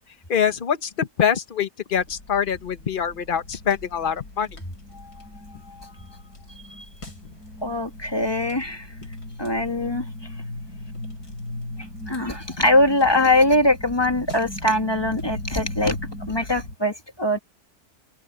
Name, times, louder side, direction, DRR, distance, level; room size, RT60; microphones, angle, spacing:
voice 1, 0.3-4.5, left 8 dB, 35° left, 1.0 m, -24 dB
sound 1, 1.9-16.8, left 1 dB, 65° left, 5.7 m, -38 dB
voice 2, 4.9-5.2 5.7-5.9 6.8-6.9 7.6-8.9 9.4-10.0 12.1-16.0 16.3-17.4, left 1 dB, 15° left, 1.7 m, -22 dB
open air
omnidirectional pair, 1.8 m